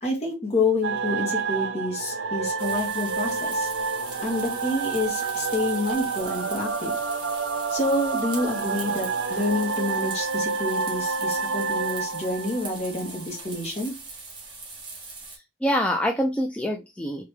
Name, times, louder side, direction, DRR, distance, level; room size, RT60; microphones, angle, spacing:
voice 1, 0.0-3.7 4.2-6.9 7.7-13.9, left 2 dB, 35° left, 0 dB, 1.4 m, -28 dB
sound 1, 0.8-13.4, right 5 dB, 70° right, 0.6 m, -29 dB
sound 2, 2.6-15.4, right 3 dB, 25° right, 1.2 m, -41 dB
voice 2, 15.3-17.2, equal, 5° left, 2 dB, 0.3 m, -26 dB
3.3 x 2.8 x 3.2 m, 0.23 s
head